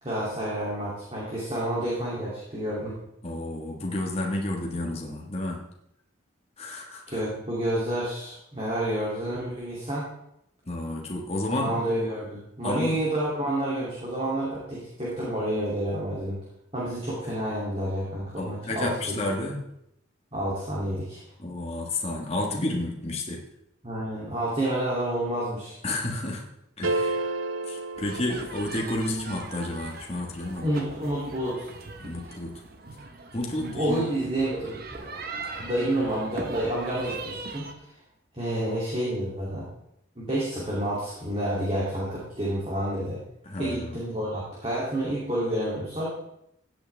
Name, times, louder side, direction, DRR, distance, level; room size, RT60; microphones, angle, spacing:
voice 1, 0.0-3.0 7.1-10.1 11.5-16.4 16.7-19.2 20.3-21.2 23.8-25.8 30.6-31.7 33.6-35.1 35.4-37.7 38.3-39.7 40.2-43.2 43.6-46.1, right 1 dB, 30° right, -7 dB, 2.8 m, -29 dB
voice 2, 3.2-5.7 6.6-7.2 10.7-11.8 12.6-13.0 18.4-19.7 21.4-23.4 25.8-26.5 26.8-27.3 27.7-30.7 32.0-32.6 33.3-34.1 43.4-44.0, left 1 dB, 30° left, 0 dB, 1.6 m, -31 dB
sound 1, 26.8-29.1, right 2 dB, 70° right, 0.7 m, -30 dB
Kids Playing Sound Effect, 27.9-37.7, right 3 dB, 50° right, 1.1 m, -40 dB
15.5 x 8.6 x 3.5 m, 0.77 s
head